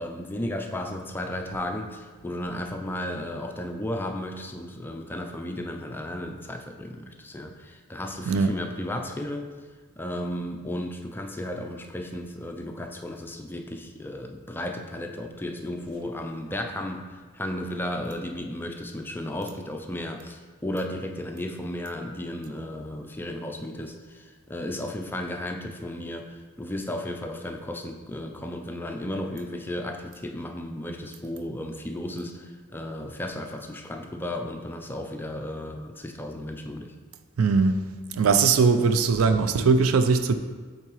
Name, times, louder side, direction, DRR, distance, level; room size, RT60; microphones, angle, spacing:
voice 1, 0.0-9.5 10.0-36.9, left 1 dB, 10° left, 0.4 m, -34 dB
voice 2, 37.4-37.8 38.1-40.3, right 4 dB, 75° right, 0.4 m, -20 dB
8.1 x 3.9 x 3.0 m
head